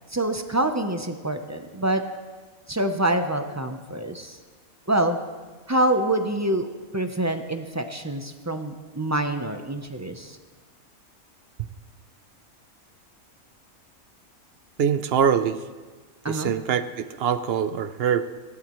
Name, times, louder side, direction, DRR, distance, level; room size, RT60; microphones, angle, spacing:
voice 1, 0.1-2.0 2.7-4.4 4.9-5.2 5.7-6.7 6.9-10.4 16.2-16.5, right 1 dB, 20° right, 6 dB, 0.4 m, -26 dB
voice 2, 14.8-15.6 16.3-18.2, right 8 dB, 60° right, 12 dB, 0.7 m, -23 dB
19.0 x 17.0 x 3.1 m, 1.4 s
omnidirectional pair, 1.5 m